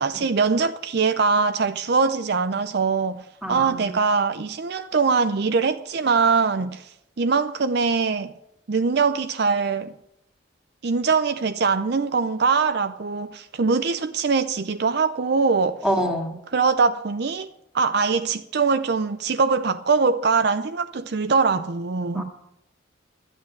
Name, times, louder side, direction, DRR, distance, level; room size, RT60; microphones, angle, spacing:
voice 1, 0.0-8.3 8.7-9.9 10.8-15.8 16.5-22.2, right 4 dB, 55° right, 0.5 m, -22 dB
voice 2, 3.4-4.0 15.8-16.3 22.1-22.2, equal, 5° right, 2.0 m, -26 dB
12.5 x 9.0 x 8.4 m
head